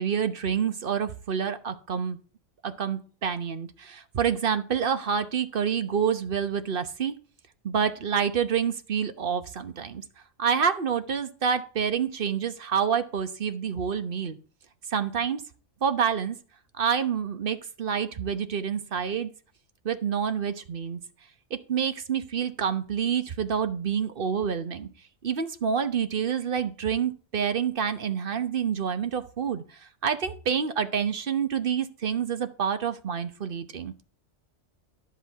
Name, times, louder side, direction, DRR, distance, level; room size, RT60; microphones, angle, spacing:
voice 1, 0.0-2.2 2.6-7.1 7.6-10.0 10.4-14.4 14.9-15.4 15.8-16.4 16.8-19.3 19.8-21.0 21.5-24.9 25.2-29.6 30.0-34.0, right 7 dB, 45° right, 10 dB, 1.1 m, -28 dB
11.0 x 7.8 x 4.6 m, 0.38 s
omnidirectional pair, 1.4 m